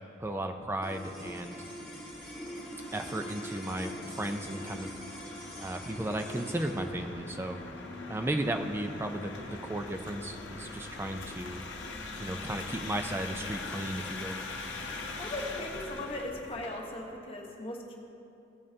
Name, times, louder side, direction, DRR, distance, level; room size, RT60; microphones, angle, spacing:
voice 1, 0.2-1.7 2.9-4.9 5.2-7.6 8.1-11.6 12.2-14.4, right 1 dB, 15° right, 6 dB, 0.3 m, -35 dB
sound 1, 0.8-11.3, equal, 5° left, 1.8 m, -44 dB
sound 2, 1.1-16.7, left 3 dB, 70° left, 0.8 m, -43 dB
voice 2, 15.2-17.9, left 1 dB, 30° left, 0 dB, 1.0 m, -38 dB
16.0 x 5.3 x 2.8 m, 2.7 s
head